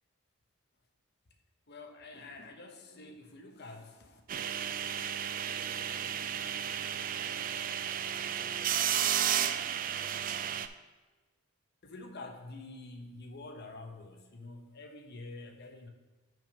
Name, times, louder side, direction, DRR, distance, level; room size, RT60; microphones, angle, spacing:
voice 1, 1.7-4.2 11.8-15.9, left 2 dB, 55° left, 4 dB, 0.9 m, -47 dB
sound 1, 4.3-10.7, right 9 dB, 40° right, 0.3 m, -33 dB
6.1 x 5.2 x 5.3 m, 1.2 s
head